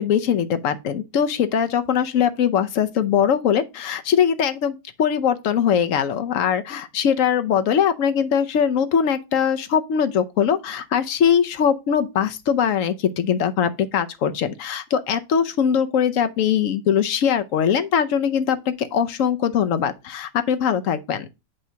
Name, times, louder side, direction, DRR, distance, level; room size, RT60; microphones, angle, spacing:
voice 1, 0.0-21.3, left 8 dB, 70° left, 0.7 m, -21 dB
8.2 x 2.8 x 5.6 m
omnidirectional pair, 2.0 m